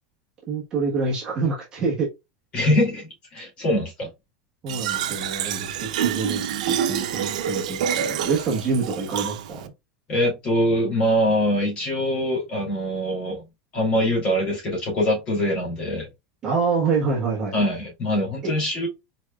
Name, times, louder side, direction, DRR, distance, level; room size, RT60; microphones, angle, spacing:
voice 1, 0.5-2.1 4.6-9.6 16.4-17.5, right 4 dB, 20° right, 1.3 m, -26 dB
voice 2, 2.5-4.1 10.1-13.4 13.7-16.1 17.5-18.9, equal, 25° left, 2.4 m, -23 dB
Fill (with liquid), 4.7-9.7, right 9 dB, 90° right, 0.7 m, -27 dB
4.6 x 4.3 x 2.3 m
supercardioid pair, 180°, 4 cm